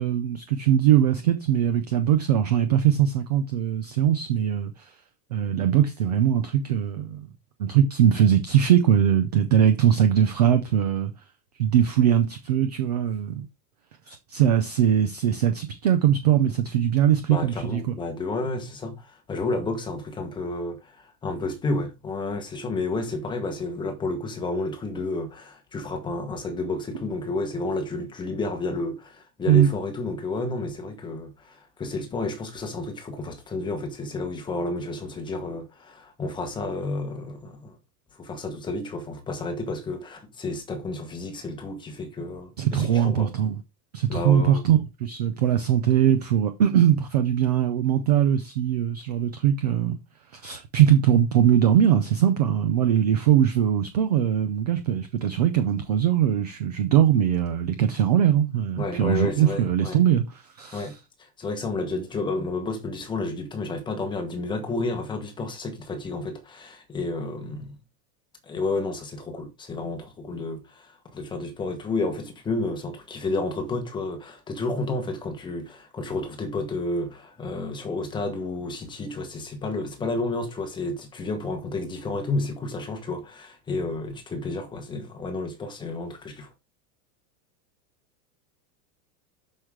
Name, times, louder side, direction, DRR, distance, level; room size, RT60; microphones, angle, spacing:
voice 1, 0.0-4.9 5.3-7.3 7.6-11.1 11.6-13.5 14.1-17.9 29.5-29.7 42.6-43.6 43.9-50.0 50.3-60.9, right 9 dB, 30° right, 0.4 m, -21 dB
voice 2, 17.3-37.8 38.1-43.3 44.1-44.6 58.8-60.0 60.7-60.9 61.2-67.8 68.4-86.5, left 2 dB, 10° left, 1.1 m, -31 dB
7.7 x 6.4 x 3.6 m
supercardioid pair, 180°, 48 cm